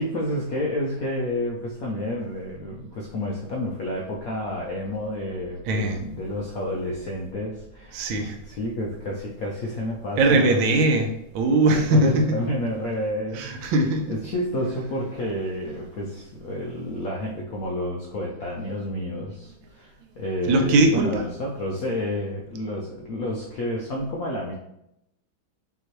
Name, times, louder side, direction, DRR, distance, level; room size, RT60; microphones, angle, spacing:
voice 1, 0.0-10.7 11.7-13.7 14.1-24.6, left 1 dB, 75° left, -2 dB, 0.8 m, -30 dB
voice 2, 5.7-6.0 7.9-8.4 10.2-12.4 13.3-14.2 20.5-21.2, right 2 dB, 80° right, 4 dB, 1.4 m, -20 dB
5.6 x 3.0 x 3.0 m, 0.82 s
omnidirectional pair, 2.2 m